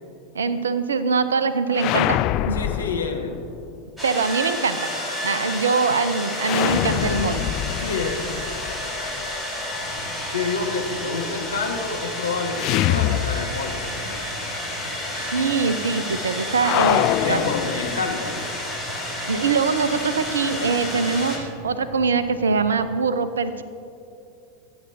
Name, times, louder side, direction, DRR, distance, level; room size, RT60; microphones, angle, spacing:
voice 1, 0.3-2.6 4.0-4.9 5.2-7.5 10.4-10.5 15.1-17.5 19.3-23.6, right 5 dB, 70° right, 13 dB, 0.7 m, -23 dB
sound 1, 1.7-3.7 6.4-9.4 12.5-13.9 14.2-14.3 16.6-18.3, left 14 dB, 40° left, 0.3 m, -25 dB
voice 2, 2.5-3.5 7.8-8.3 10.3-14.2 16.7-18.5, left 4 dB, 75° left, 1 dB, 1.6 m, -28 dB
sound 2, 4.0-21.4, left 1 dB, 5° right, 3.7 m, -31 dB
sound 3, 9.7-22.8, right 1 dB, 20° left, 2.1 m, -42 dB
29.0 x 9.7 x 2.7 m, 2.7 s
figure-of-eight pair, 85°, 0 cm